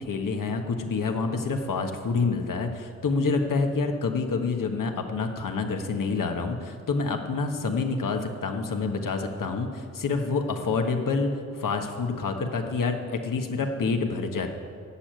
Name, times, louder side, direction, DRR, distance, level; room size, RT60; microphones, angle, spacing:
voice 1, 0.0-11.3 11.6-14.5, left 4 dB, 65° left, 4 dB, 1.5 m, -27 dB
11.5 x 7.4 x 9.3 m, 2.3 s
supercardioid pair, 40°, 35 cm